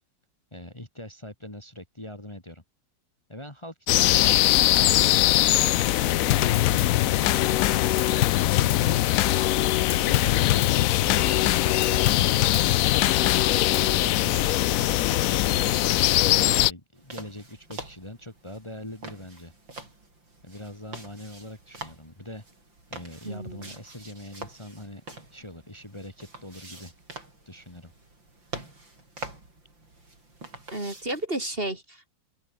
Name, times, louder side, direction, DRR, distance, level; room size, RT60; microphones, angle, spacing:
voice 1, 0.5-2.6 3.3-5.2 9.9-12.3 16.4-19.5 20.4-22.4 22.9-25.0 25.3-26.9 27.4-27.9, left 1 dB, 15° left, 3.0 m, -42 dB
sound 1, 3.9-16.7, left 14 dB, 90° left, 0.7 m, -22 dB
Drum kit / Snare drum / Bass drum, 6.3-14.0, left 15 dB, 70° left, 1.1 m, -26 dB
sound 2, 17.0-31.3, right 2 dB, 85° right, 8.5 m, -45 dB
voice 2, 23.2-23.7 30.7-32.1, right 1 dB, 30° right, 4.1 m, -32 dB
open air
omnidirectional pair, 2.0 m